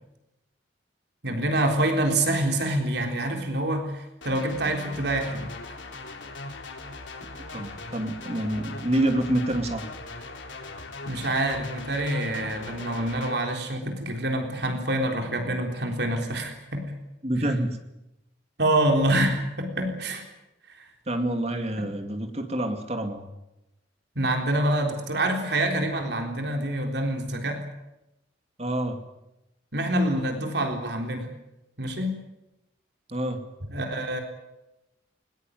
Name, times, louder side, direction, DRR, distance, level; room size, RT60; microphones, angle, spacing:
voice 1, 1.2-5.5 11.1-16.9 18.6-20.2 24.2-27.6 29.7-31.3 31.8-32.2 33.7-34.2, right 1 dB, 60° right, 4 dB, 3.8 m, -26 dB
sound 1, 4.2-13.4, left 3 dB, 80° left, 3.8 m, -40 dB
voice 2, 7.2-9.9 17.2-17.8 21.1-23.3 28.6-29.0 33.1-33.4, right 1 dB, 35° right, 6 dB, 2.4 m, -27 dB
20.5 x 20.0 x 9.4 m, 0.94 s
head